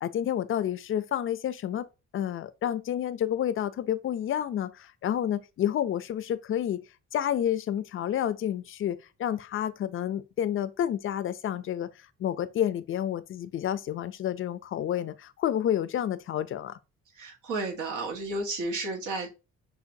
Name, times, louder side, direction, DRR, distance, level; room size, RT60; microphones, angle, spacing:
voice 1, 0.0-1.9 2.1-6.8 7.1-11.9 12.2-16.8, left 10 dB, 45° left, 0.5 m, -29 dB
voice 2, 17.1-19.3, right 2 dB, 85° right, 1.5 m, -32 dB
6.2 x 2.5 x 2.6 m
cardioid pair, 90°, 30 cm